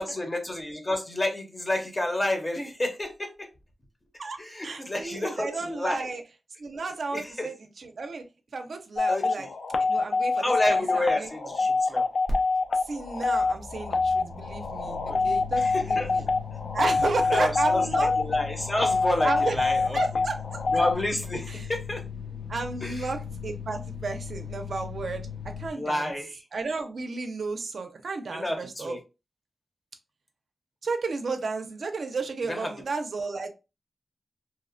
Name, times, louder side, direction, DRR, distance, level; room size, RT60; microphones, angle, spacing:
voice 1, 0.0-3.5 4.4-6.0 7.1-7.5 9.1-9.5 10.4-12.1 15.1-15.2 15.6-16.1 17.3-20.0 20.7-22.0 22.8-23.1 25.7-26.4 28.3-29.0 32.5-32.7, left 1 dB, 20° left, 0.6 m, -30 dB
voice 2, 4.6-6.2 6.6-8.2 8.5-9.5 9.8-11.3 11.6-11.7 12.9-16.3 16.7-18.1 19.2-20.8 21.5-21.7 22.5-25.3 25.6-26.1 26.5-29.0 30.8-33.5, right 4 dB, 65° right, 0.4 m, -33 dB
sound 1, 9.0-20.9, left 3 dB, 65° left, 0.3 m, -25 dB
sound 2, 12.3-12.4 12.6-25.7, left 5 dB, 85° left, 0.7 m, -38 dB
2.8 x 2.0 x 2.4 m
wide cardioid pair, 145°, 0 cm